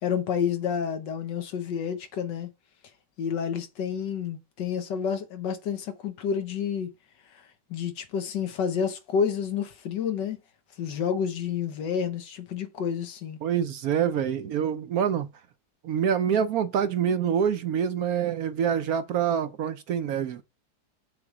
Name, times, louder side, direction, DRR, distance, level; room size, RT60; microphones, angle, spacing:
voice 1, 0.0-2.5 3.2-6.9 7.7-10.4 10.8-13.4, left 7 dB, 80° left, 1.6 m, -29 dB
voice 2, 13.4-15.3 15.8-20.4, right 8 dB, 65° right, 1.0 m, -26 dB
6.8 x 3.5 x 6.0 m
omnidirectional pair, 1.9 m